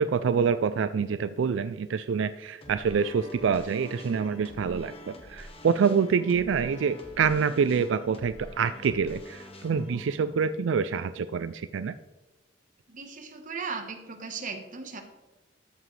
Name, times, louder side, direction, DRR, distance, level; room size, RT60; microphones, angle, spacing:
voice 1, 0.0-11.9, right 6 dB, 85° right, 12 dB, 0.4 m, -26 dB
sound 1, 2.6-11.8, left 1 dB, 30° left, 1.3 m, -47 dB
voice 2, 12.9-15.0, right 5 dB, 45° right, 5 dB, 1.3 m, -37 dB
13.5 x 7.3 x 3.3 m, 1.1 s
head